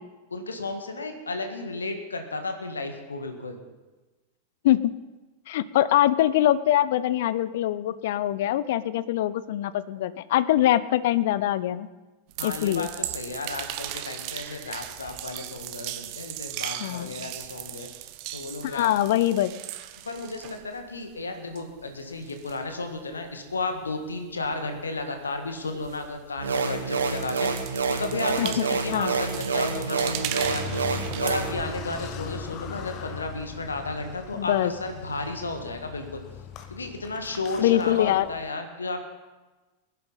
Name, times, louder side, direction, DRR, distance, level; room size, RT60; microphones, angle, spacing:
voice 1, 0.3-3.6 12.4-17.9 18.3-18.9 20.0-27.5 28.0-30.9 31.2-36.2 36.7-39.1, left 3 dB, 75° left, 6 dB, 1.7 m, -33 dB
voice 2, 5.5-11.9 12.4-12.9 16.8-17.1 18.6-19.5 28.4-28.5 28.9-29.1 34.4-34.7 37.6-38.3, left 13 dB, 55° left, 16 dB, 0.5 m, -23 dB
sound 1, 12.3-21.2 21.5-26.5 26.8-31.7, right 13 dB, 45° right, 0.9 m, -38 dB
sound 2, 26.4-31.5, right 4 dB, 70° right, 1.4 m, -28 dB
Car, 30.2-38.5, left 7 dB, 35° left, 1.1 m, -40 dB
20.5 x 11.0 x 4.1 m, 1.2 s
figure-of-eight pair, 90°, 0 cm